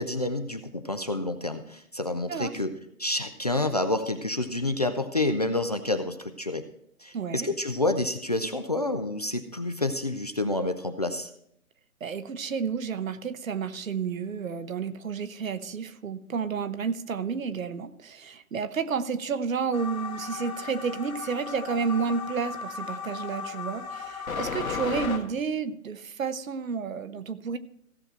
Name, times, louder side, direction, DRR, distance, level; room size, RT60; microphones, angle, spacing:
voice 1, 0.0-2.7 3.0-6.6 7.0-11.3, left 2 dB, 30° left, 9 dB, 0.4 m, -28 dB
voice 2, 7.1-7.5 12.0-27.6, right 6 dB, 65° right, 12 dB, 1.0 m, -31 dB
sound 1, 19.7-25.2, left 5 dB, 70° left, 1.7 m, -35 dB
16.0 x 6.6 x 4.4 m, 0.71 s
figure-of-eight pair, 140°, 43 cm